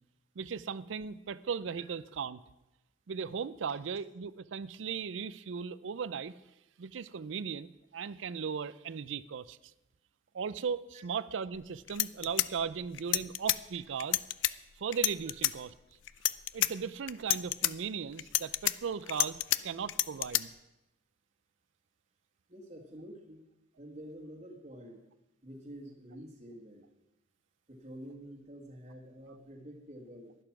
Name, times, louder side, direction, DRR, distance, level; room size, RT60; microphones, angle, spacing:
voice 1, 0.4-2.4 3.1-6.3 6.8-9.6 10.3-14.2 14.8-15.7 16.5-20.5, right 6 dB, 75° right, 17 dB, 0.4 m, -37 dB
sound 1, 11.5-11.6 11.9-13.6 14.0-14.5 14.9-15.5 16.1-16.7 17.1-17.7 18.2-19.6 19.9-20.4, left 15 dB, 70° left, 0.4 m, -29 dB
voice 2, 22.5-23.5 23.8-25.0 25.4-27.0 27.7-30.4, equal, 35° right, -3 dB, 1.7 m, -48 dB
11.5 x 11.0 x 5.9 m, 0.96 s
head